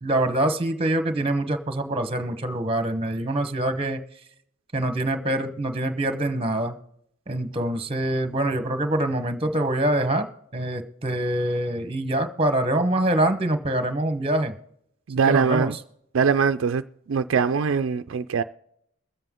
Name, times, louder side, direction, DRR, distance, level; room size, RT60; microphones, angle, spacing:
voice 1, 0.0-4.0 4.7-6.8 7.3-10.3 10.5-14.5 15.2-15.8, right 1 dB, 30° right, 1.1 m, -25 dB
voice 2, 15.1-15.8 16.1-16.8 17.1-18.4, right 6 dB, 75° right, 0.4 m, -22 dB
22.0 x 7.7 x 3.7 m
head